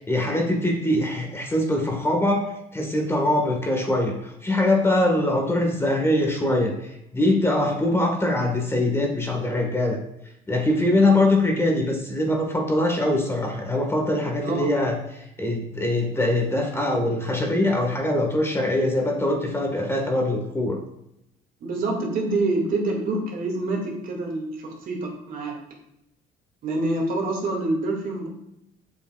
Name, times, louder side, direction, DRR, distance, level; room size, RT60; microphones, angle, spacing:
voice 1, 0.0-2.4 2.7-10.0 10.5-15.0 15.4-20.8, left 1 dB, 15° left, 1 dB, 1.5 m, -23 dB
voice 2, 21.6-25.6 26.6-28.3, right 2 dB, 55° right, -1 dB, 2.1 m, -26 dB
7.5 x 7.1 x 2.3 m, 0.83 s
cardioid pair, 110°, 17 cm